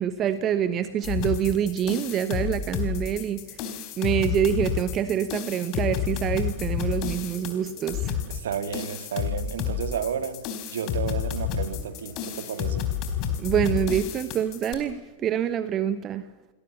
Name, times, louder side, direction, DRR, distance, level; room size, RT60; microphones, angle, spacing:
voice 1, 0.0-3.4 4.0-8.1 13.4-16.2, right 9 dB, 30° right, 1.2 m, -26 dB
sound 1, 1.0-14.7, left 9 dB, 40° left, 3.9 m, -30 dB
voice 2, 8.3-12.9, right 7 dB, 60° right, 1.8 m, -32 dB
28.5 x 21.5 x 7.1 m
figure-of-eight pair, 90°, 0 cm